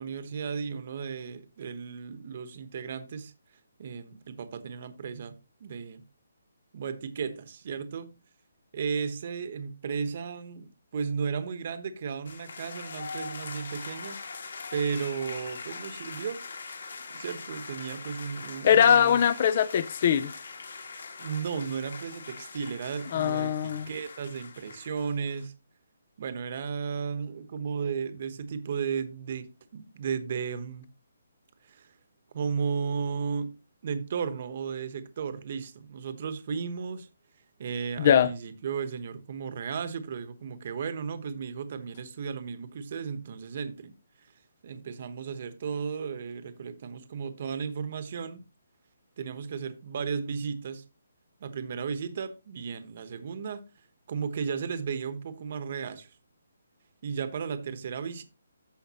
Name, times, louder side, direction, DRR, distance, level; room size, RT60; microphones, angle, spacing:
voice 1, 0.0-3.3 3.8-6.0 6.7-8.1 8.7-14.2 14.7-16.4 17.1-19.2 21.2-25.5 26.2-30.9 31.6-31.9 32.3-33.6 33.8-37.1 37.6-43.9 44.6-48.4 49.2-50.8 51.4-53.7 54.1-56.1 57.0-58.2, right 6 dB, 35° right, 1.0 m, -34 dB
sound 1, 12.2-25.5, left 4 dB, 65° left, 2.4 m, -42 dB
voice 2, 18.6-20.3 23.1-23.9 38.0-38.3, left 8 dB, 30° left, 0.4 m, -21 dB
14.5 x 5.1 x 2.9 m
hypercardioid pair, 175°, 0 cm